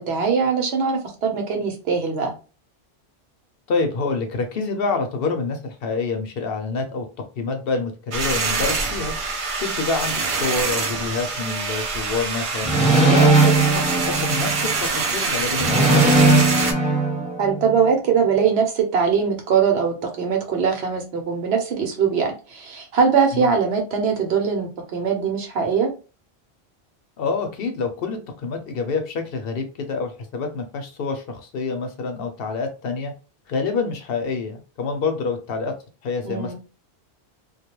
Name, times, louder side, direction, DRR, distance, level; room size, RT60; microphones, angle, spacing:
voice 1, 0.0-2.3 17.4-25.9 36.2-36.5, right 6 dB, 80° right, 3 dB, 1.0 m, -21 dB
voice 2, 3.7-7.1 7.4-9.1 9.5-12.7 13.0-16.2 23.3-23.5 27.2-33.1 33.5-35.7 36.0-36.5, left 4 dB, 70° left, 5 dB, 0.8 m, -27 dB
sound 1, 8.1-16.7, right 4 dB, 60° right, 0.3 m, -25 dB
sound 2, 12.6-14.8 15.6-17.8, right 2 dB, 5° right, 1.0 m, -18 dB
2.3 x 2.2 x 2.9 m, 0.33 s
omnidirectional pair, 1.1 m